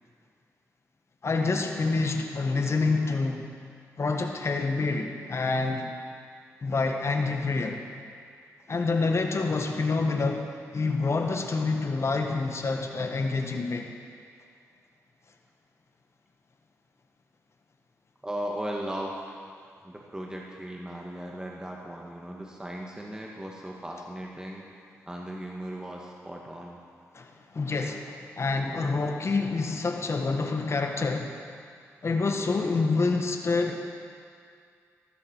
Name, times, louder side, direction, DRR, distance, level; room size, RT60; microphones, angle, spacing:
voice 1, 1.2-3.4 4.0-5.9 6.6-7.8 8.7-13.9 27.1-31.4 32.0-33.8, left 3 dB, 45° left, 4 dB, 1.5 m, -27 dB
voice 2, 18.2-19.4 19.8-24.7 25.1-26.8, right 1 dB, 10° right, -1 dB, 1.8 m, -37 dB
15.0 x 13.0 x 4.6 m, 2.2 s
supercardioid pair, 45°, 6 cm